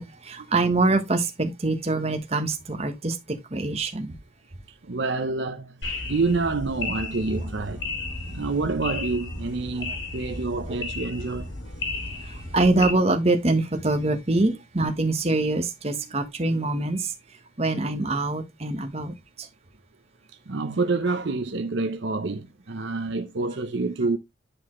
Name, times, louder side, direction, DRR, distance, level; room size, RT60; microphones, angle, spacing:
voice 1, 0.0-3.2 3.5-4.2 9.8-9.9 10.7-10.8 12.2-17.1 17.6-19.5, right 2 dB, 30° right, 1.2 m, -24 dB
voice 2, 4.8-7.9 8.3-11.5 20.5-24.2, right 3 dB, 65° right, 0.7 m, -27 dB
sound 1, 5.8-12.9, left 3 dB, 65° left, 2.2 m, -34 dB
10.0 x 4.2 x 3.1 m
head